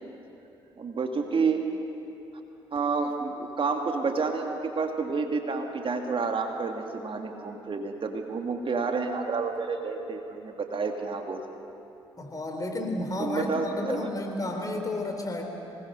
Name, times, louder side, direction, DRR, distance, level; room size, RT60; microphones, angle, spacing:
voice 1, 0.8-1.6 2.7-11.4 13.2-14.1, right 4 dB, 45° right, 4 dB, 2.3 m, -29 dB
voice 2, 12.2-15.5, left 1 dB, 30° left, 3 dB, 4.5 m, -32 dB
26.0 x 20.0 x 6.8 m, 2.9 s
hypercardioid pair, 45°, 12 cm